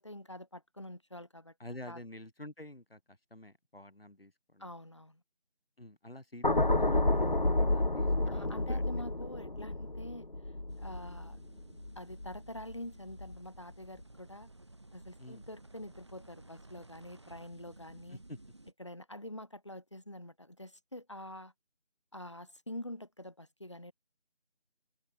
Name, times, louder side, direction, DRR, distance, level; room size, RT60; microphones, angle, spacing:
voice 1, 0.0-1.5 1.9-2.0 4.6-5.2 8.3-10.3 10.8-11.4 12.0-14.5 14.9-18.2 18.8-21.5 22.1-23.9, left 1 dB, 30° left, 2.2 m, -46 dB
voice 2, 1.6-4.7 5.8-8.8 15.2-15.4 18.1-18.4, left 1 dB, 65° left, 4.2 m, -49 dB
sound 1, 6.4-12.7 13.1-13.4, left 2 dB, 50° left, 0.7 m, -30 dB
sound 2, 10.7-18.7, right 2 dB, 25° right, 4.7 m, -55 dB
open air
figure-of-eight pair, 175°, 31 cm